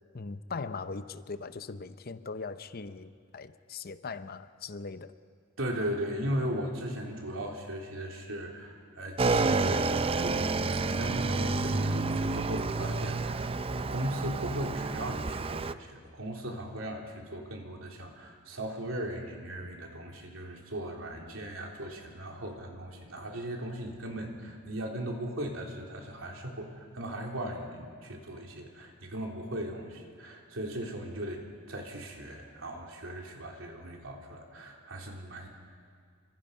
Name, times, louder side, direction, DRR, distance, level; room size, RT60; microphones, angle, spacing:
voice 1, 0.1-5.1, left 4 dB, 50° left, 12 dB, 0.8 m, -40 dB
voice 2, 5.6-35.5, right 1 dB, 75° right, 1 dB, 3.5 m, -37 dB
Motorcycle / Engine, 9.2-15.7, right 3 dB, 30° right, 0.5 m, -29 dB
28.5 x 25.0 x 5.6 m, 2.1 s
head